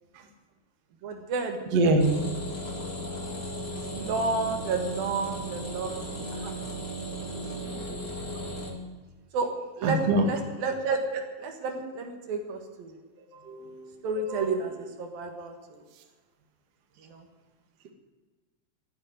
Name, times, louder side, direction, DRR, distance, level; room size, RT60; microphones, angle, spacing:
voice 1, 1.0-1.6 3.9-6.0 6.3-6.5 7.7-8.1 9.3-9.5 9.8-12.9 14.0-15.8 17.0-17.2, right 3 dB, 65° right, 4 dB, 3.2 m, -31 dB
voice 2, 1.7-2.1 9.8-10.3 13.2-14.0, right 2 dB, 50° right, 3 dB, 2.5 m, -25 dB
sound 1, 2.0-8.7, right 1 dB, 30° left, 2.6 m, -36 dB
14.5 x 10.5 x 9.3 m, 1.3 s
omnidirectional pair, 4.5 m